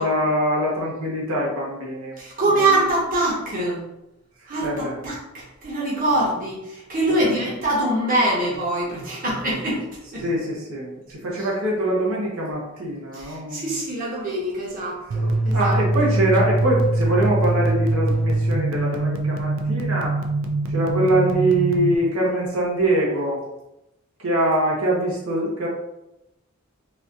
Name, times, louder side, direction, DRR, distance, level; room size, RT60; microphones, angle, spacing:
voice 1, 0.0-2.2 2.5-2.8 4.6-5.0 7.2-7.5 10.2-13.8 15.5-20.1 20.7-23.4 24.2-25.7, right 1 dB, 90° right, -4 dB, 1.0 m, -23 dB
voice 2, 2.2-3.8 4.5-9.8 10.1-10.2 13.1-15.7, right 1 dB, 40° right, -5 dB, 1.1 m, -24 dB
sound 1, 15.1-21.9, right 2 dB, 70° right, 0.4 m, -23 dB
4.2 x 2.7 x 2.4 m, 0.91 s
head